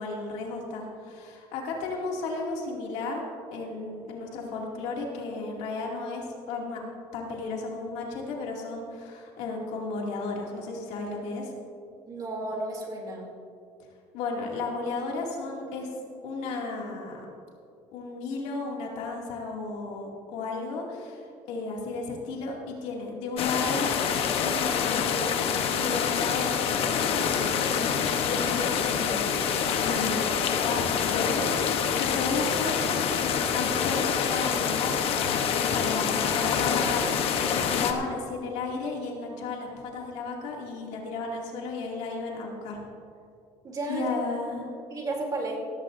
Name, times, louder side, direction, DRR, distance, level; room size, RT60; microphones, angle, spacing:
voice 1, 0.0-6.8 7.1-11.5 14.1-15.9 16.2-17.3 17.9-23.9 24.4-29.5 29.8-32.8 33.2-42.8 43.9-44.7, left 3 dB, 75° left, -1 dB, 2.5 m, -34 dB
voice 2, 12.1-13.3 43.6-44.1 44.9-45.6, right 2 dB, 35° right, -1 dB, 3.1 m, -33 dB
sound 1, 23.4-37.9, left 7 dB, 60° left, 1.1 m, -26 dB
17.0 x 14.5 x 2.7 m, 2.4 s
cardioid pair, 115°, 11 cm